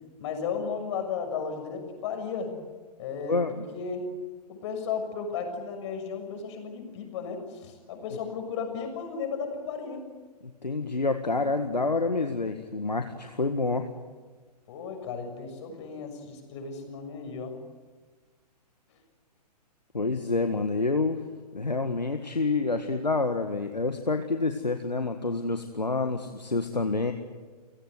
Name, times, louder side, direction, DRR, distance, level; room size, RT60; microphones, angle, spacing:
voice 1, 0.2-2.6 3.0-4.1 4.5-10.0 14.7-17.5, left 6 dB, 45° left, 4 dB, 6.7 m, -34 dB
voice 2, 3.3-3.6 10.6-13.9 19.9-21.2 21.5-27.1, left 3 dB, 85° left, 7 dB, 1.8 m, -28 dB
29.5 x 17.5 x 9.5 m, 1.4 s
figure-of-eight pair, 120°, 21 cm